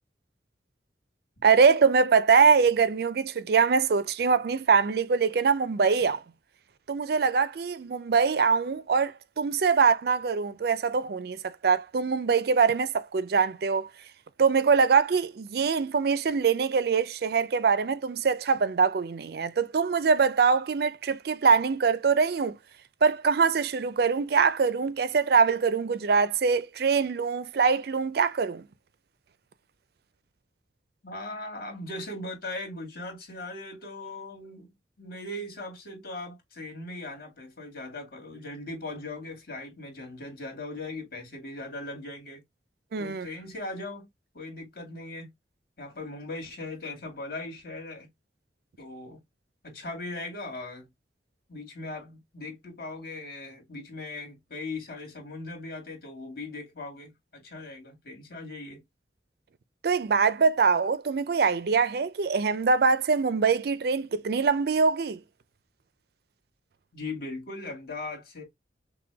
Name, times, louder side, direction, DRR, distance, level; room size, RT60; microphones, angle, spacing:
voice 1, 1.4-6.2 6.9-13.9 14.4-22.6 23.0-28.6 42.9-43.3 59.8-65.2, right 5 dB, 60° right, 0.4 m, -23 dB
voice 2, 31.0-34.7 35.0-42.4 43.0-44.1 44.3-45.3 45.8-48.1 48.8-49.2 49.6-50.9 51.5-58.8 66.9-68.4, left 2 dB, 55° left, 2.2 m, -39 dB
5.9 x 2.2 x 3.4 m
head